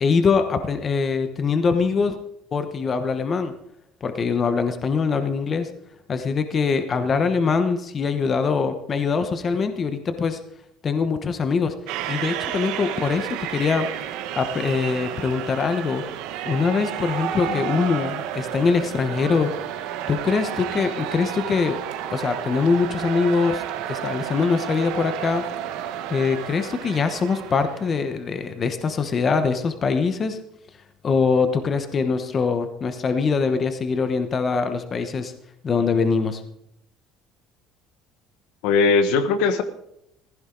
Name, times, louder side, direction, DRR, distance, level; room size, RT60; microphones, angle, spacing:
voice 1, 0.0-2.2 2.5-3.5 4.0-5.7 6.1-10.4 10.8-11.7 12.1-13.9 14.4-16.0 16.5-19.5 20.1-21.8 22.1-23.6 23.9-25.4 26.1-30.4 31.0-35.3 35.6-36.4, left 5 dB, 25° left, 9 dB, 1.0 m, -23 dB
sound 1, 11.9-28.1, right 11 dB, 75° right, 1.3 m, -31 dB
voice 2, 38.6-39.6, left 4 dB, 75° left, 10 dB, 1.3 m, -19 dB
15.5 x 15.0 x 3.9 m, 0.78 s
cardioid pair, 170°, 0 cm